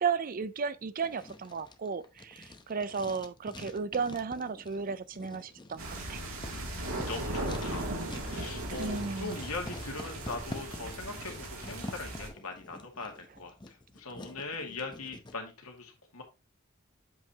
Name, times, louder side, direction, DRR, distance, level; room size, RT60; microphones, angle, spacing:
voice 1, 0.0-5.8 6.1-6.2 8.8-9.4, right 5 dB, 40° right, 0.5 m, -34 dB
Writing, 1.0-15.4, left 2 dB, 20° left, 0.8 m, -47 dB
sound 1, 5.8-12.3, right 1 dB, 75° right, 2.7 m, -37 dB
voice 2, 6.5-16.2, left 3 dB, 90° left, 2.1 m, -41 dB
7.9 x 5.6 x 2.9 m
head